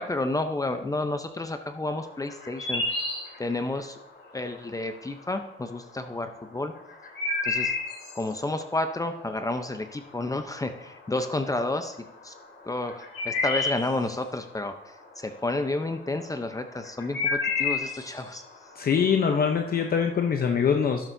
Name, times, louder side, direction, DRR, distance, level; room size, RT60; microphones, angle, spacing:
voice 1, 0.0-2.8 3.4-4.0 4.3-6.7 7.4-7.7 8.1-12.0 12.2-12.3 12.6-14.7 15.2-18.4, left 2 dB, 15° left, 7 dB, 0.8 m, -30 dB
sound 1, 1.9-20.3, left 3 dB, 70° left, 3.5 m, -33 dB
voice 2, 18.8-21.1, left 6 dB, 50° left, 4 dB, 0.9 m, -23 dB
12.0 x 11.0 x 2.7 m, 0.89 s
cardioid pair, 90°, 20 cm